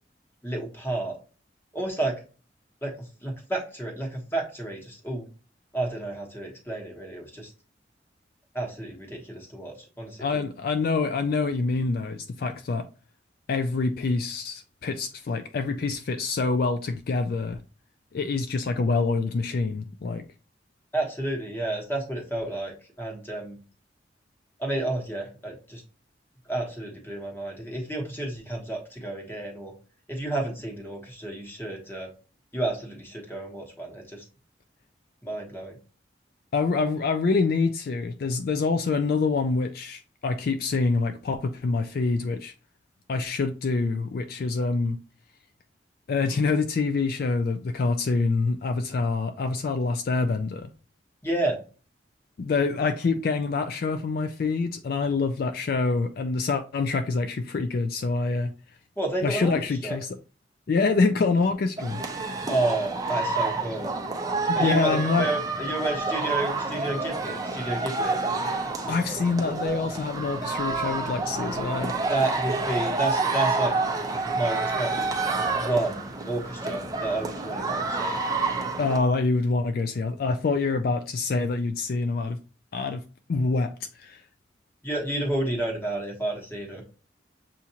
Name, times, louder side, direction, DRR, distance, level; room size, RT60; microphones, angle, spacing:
voice 1, 0.4-1.2 1.7-2.1 2.8-2.9 3.2-5.3 5.7-7.5 8.5-10.5 20.9-23.6 24.6-25.8 26.5-29.7 30.1-32.1 32.5-34.2 35.2-35.8 51.2-51.6 59.0-60.0 62.5-63.9 64.5-68.1 72.1-73.8 74.2-74.9 75.6-78.2 84.8-86.8, right 2 dB, 10° left, 1.1 m, -30 dB
voice 2, 10.2-12.9 13.5-17.6 18.1-20.2 36.5-42.5 43.1-45.0 46.1-50.7 52.4-58.5 59.2-60.2 60.7-62.0 64.5-65.3 68.9-71.9 78.8-82.4 82.7-83.0 83.3-83.7 84.0-84.2, left 4 dB, 50° left, 0.3 m, -26 dB
sound 1, 61.8-79.0, right 3 dB, 20° right, 0.6 m, -28 dB
6.9 x 2.5 x 2.8 m
head